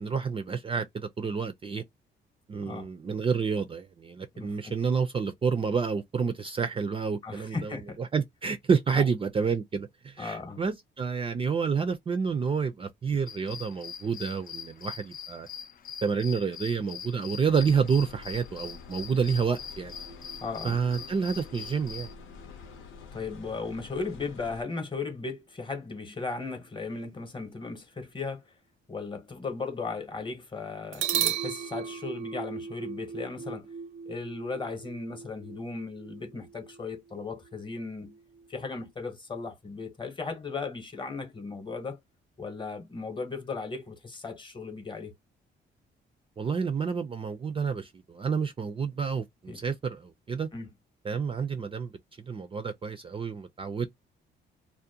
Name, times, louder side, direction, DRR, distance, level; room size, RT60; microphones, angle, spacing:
voice 1, 0.0-1.8 2.5-15.5 16.0-19.9 20.6-22.1 46.4-50.5 51.1-51.9 52.3-53.9, right 5 dB, 25° right, 0.4 m, -29 dB
voice 2, 4.3-4.7 7.2-8.0 8.9-9.1 10.2-10.6 20.4-20.8 23.1-28.4 28.9-33.7 34.1-38.2 38.5-42.0 42.4-45.1 49.5-49.6 50.5-50.7, left 4 dB, 25° left, 0.8 m, -36 dB
sound 1, 13.3-22.1, left 7 dB, 45° left, 0.4 m, -43 dB
sound 2, 17.5-24.6, left 5 dB, 85° left, 0.7 m, -48 dB
sound 3, 19.8-23.3 30.9-38.8, right 8 dB, 85° right, 0.6 m, -38 dB
2.5 x 2.1 x 2.6 m
cardioid pair, 90°, 20 cm